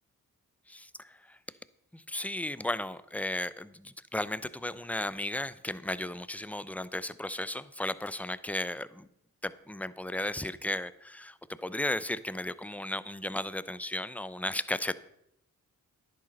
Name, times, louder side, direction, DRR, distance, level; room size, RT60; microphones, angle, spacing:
voice 1, 0.7-1.4 1.9-9.1 9.4-15.0, left 1 dB, 5° left, 15 dB, 0.6 m, -35 dB
10.5 x 7.9 x 5.4 m, 0.78 s
supercardioid pair, 40°, 37 cm